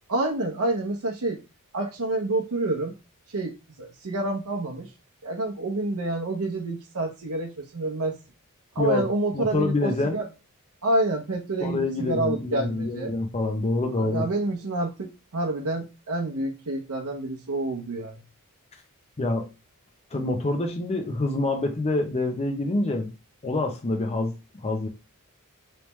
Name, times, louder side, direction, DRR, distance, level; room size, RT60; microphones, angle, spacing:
voice 1, 0.1-1.4 1.7-3.0 3.3-4.9 5.2-8.2 8.7-10.3 10.8-13.1 14.0-18.2, right 2 dB, 80° right, 0.8 m, -28 dB
voice 2, 9.3-10.2 11.6-14.3 19.2-19.5 20.1-23.1 23.4-24.9, left 2 dB, 30° left, 0.6 m, -26 dB
3.3 x 3.2 x 3.1 m
head